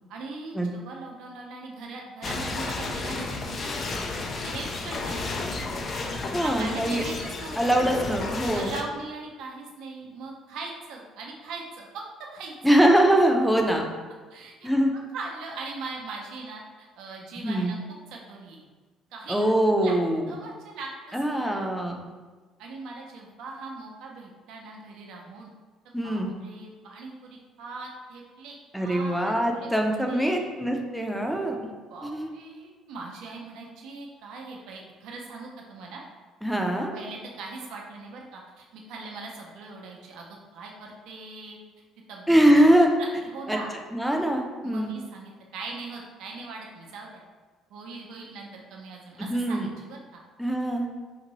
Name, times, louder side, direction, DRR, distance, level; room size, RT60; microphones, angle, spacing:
voice 1, 0.1-3.8 4.2-5.3 6.4-7.8 8.5-12.0 12.3-12.5 14.3-14.7 15.1-17.8 18.1-18.6 19.1-19.5 19.8-19.9 20.3-21.6 22.6-25.5 25.8-30.5 31.9-36.0 36.9-41.6 42.1-42.3 42.9-43.7 44.6-47.2 47.7-50.2, right 3 dB, 70° right, -1 dB, 0.5 m, -40 dB
sound 1, 2.2-8.8, left 3 dB, 45° left, 0.4 m, -32 dB
voice 2, 6.3-7.0 7.6-8.7 12.6-13.9 14.6-14.9 17.4-17.7 19.3-20.3 21.1-22.0 25.9-26.3 28.7-31.6 32.0-32.3 36.4-36.9 42.3-42.9 43.5-43.6 43.9-44.9 49.3-49.7 50.4-50.9, right 1 dB, ahead, 2 dB, 0.6 m, -22 dB
3.9 x 2.5 x 3.0 m, 1.4 s
hypercardioid pair, 55°, 0 cm